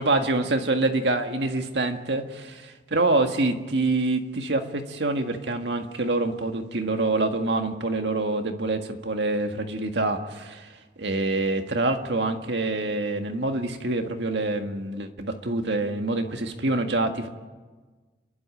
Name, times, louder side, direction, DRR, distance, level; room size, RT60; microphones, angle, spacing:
voice 1, 0.0-10.7 11.0-17.3, right 2 dB, 70° right, 5 dB, 1.8 m, -26 dB
29.5 x 11.5 x 8.9 m, 1.3 s
head